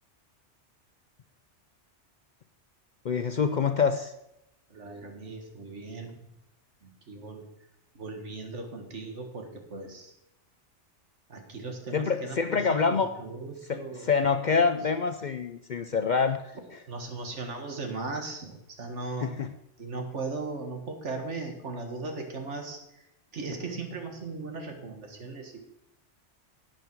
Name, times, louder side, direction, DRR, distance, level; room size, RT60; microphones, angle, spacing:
voice 1, 3.0-4.1 11.9-13.1 13.7-16.8 19.2-19.5, left 5 dB, 50° left, 9 dB, 0.6 m, -26 dB
voice 2, 4.7-6.1 6.8-7.5 8.0-10.1 11.3-14.1 14.6-14.8 16.9-19.3 19.8-22.8 23.3-25.6, right 3 dB, 75° right, 4 dB, 2.0 m, -38 dB
11.0 x 9.1 x 4.6 m, 0.87 s
omnidirectional pair, 1.2 m